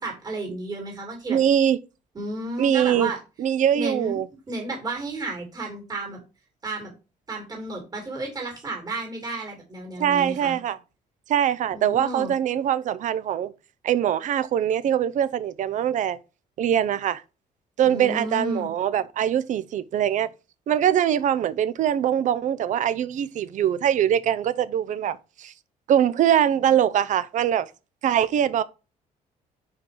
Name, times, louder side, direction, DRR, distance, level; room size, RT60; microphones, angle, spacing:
voice 1, 0.0-1.4 2.1-3.2 3.7-4.2 4.5-6.2 6.6-6.9 7.3-10.6 11.7-12.3 17.8-18.7, right 2 dB, 25° right, 2.5 m, -32 dB
voice 2, 1.3-1.8 2.6-3.1 3.4-4.3 10.0-10.8 11.3-13.5 13.8-16.2 16.6-17.2 17.8-20.3 20.7-25.5 25.9-27.7 28.0-28.6, right 10 dB, 55° right, 0.6 m, -22 dB
4.8 x 4.6 x 4.8 m
cardioid pair, 130°, 15 cm